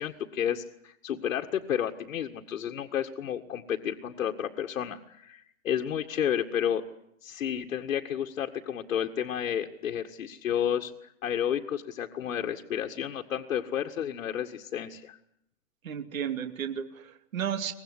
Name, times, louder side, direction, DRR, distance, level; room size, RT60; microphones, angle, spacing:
voice 1, 0.0-6.8 7.2-15.2, left 9 dB, 85° left, 2 dB, 1.9 m, -31 dB
voice 2, 15.8-17.7, right 8 dB, 90° right, 8 dB, 2.6 m, -33 dB
24.5 x 20.5 x 9.8 m, 0.75 s
supercardioid pair, 170°, 40 cm